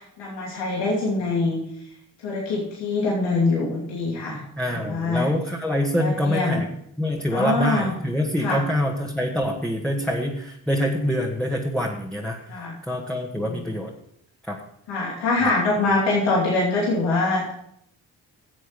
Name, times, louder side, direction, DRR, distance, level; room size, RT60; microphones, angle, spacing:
voice 1, 0.0-1.6 2.2-4.4 4.7-5.3 6.0-6.6 7.3-7.9 8.4-8.6 12.5-12.7 13.3-13.7 14.9-17.5, left 3 dB, 90° left, -4 dB, 2.8 m, -24 dB
voice 2, 4.6-6.7 7.0-12.4 12.9-13.9 14.5-14.6 15.4-15.5, equal, ahead, -2 dB, 1.8 m, -25 dB
11.0 x 7.6 x 5.2 m, 0.72 s
supercardioid pair, 55°, 41 cm